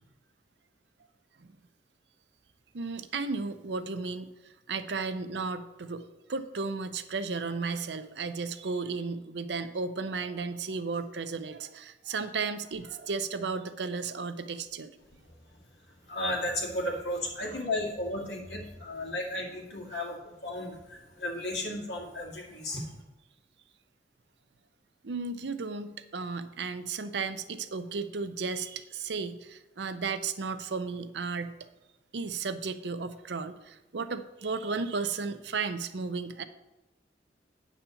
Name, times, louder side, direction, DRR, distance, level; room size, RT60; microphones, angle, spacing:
voice 1, 2.7-14.9 17.4-17.6 25.0-31.6 32.1-36.4, right 4 dB, 80° right, 10 dB, 0.6 m, -34 dB
voice 2, 16.0-22.9, left 1 dB, 80° left, -1 dB, 2.2 m, -34 dB
8.8 x 4.3 x 7.0 m, 1.0 s
head